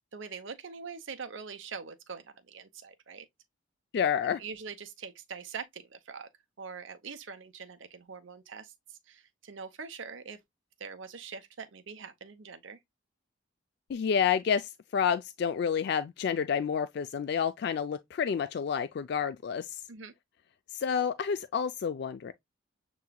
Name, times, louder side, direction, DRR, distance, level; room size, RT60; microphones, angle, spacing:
voice 1, 0.1-3.3 4.2-6.3 6.6-8.7 9.1-10.4 10.8-12.8 19.9-20.1, right 5 dB, 70° right, 0.7 m, -43 dB
voice 2, 3.9-4.4 13.9-19.8 20.7-22.3, left 7 dB, 55° left, 0.3 m, -29 dB
6.7 x 3.1 x 2.2 m
head